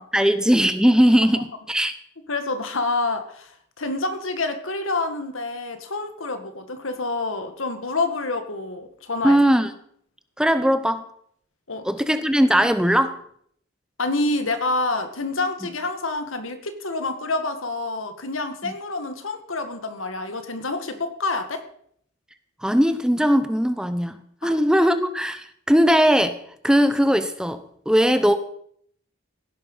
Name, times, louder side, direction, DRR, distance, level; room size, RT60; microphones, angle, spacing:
voice 1, 0.1-2.0 9.2-9.7 10.4-11.0 11.8-13.1 18.6-18.7 22.6-26.4 26.6-28.4, equal, 5° right, 10 dB, 0.8 m, -19 dB
voice 2, 2.3-9.4 11.7-12.2 14.0-21.7 24.4-24.5, left 3 dB, 85° left, 8 dB, 1.9 m, -27 dB
16.5 x 11.5 x 5.5 m, 0.66 s
head